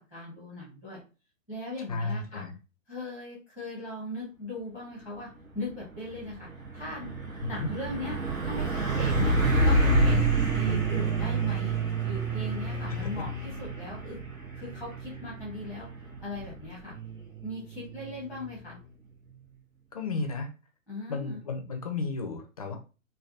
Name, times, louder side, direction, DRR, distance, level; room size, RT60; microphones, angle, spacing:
voice 1, 0.1-1.0 1.5-2.4 2.9-5.3 5.5-6.5 6.7-7.1 7.5-8.2 8.4-10.2 10.5-11.8 12.0-14.2 14.5-15.9 16.2-16.9 17.4-18.8 20.9-21.4, left 2 dB, 5° right, -4 dB, 0.7 m, -38 dB
voice 2, 1.9-2.5 7.4-7.7 19.9-20.5 21.1-22.8, left 3 dB, 30° left, 4 dB, 0.4 m, -33 dB
Truck, 5.6-5.8 6.1-18.7, right 2 dB, 85° right, 1.0 m, -29 dB
3.3 x 2.2 x 2.4 m, 0.33 s
figure-of-eight pair, 120°, 40 cm